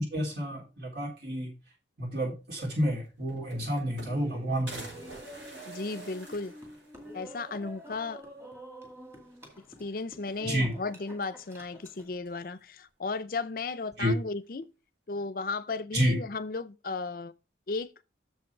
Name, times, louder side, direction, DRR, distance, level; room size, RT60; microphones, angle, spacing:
voice 1, 0.0-1.5 2.0-4.9 10.4-10.7 14.0-14.1 15.9-16.2, equal, 65° right, 3.3 m, -29 dB
sound 1, 2.7-2.8 3.0-4.3 4.7-7.3 7.7-7.8 8.0-8.1 9.3-9.8 10.1-10.9 11.9-12.5, right 2 dB, 90° right, 5.7 m, -48 dB
Laughter, 4.0-12.1, right 1 dB, 15° right, 2.1 m, -48 dB
voice 2, 5.7-6.5 7.1-8.2 9.6-14.7 15.1-17.3 17.7-17.9, left 3 dB, 50° left, 0.5 m, -35 dB
7.0 x 6.0 x 4.6 m
head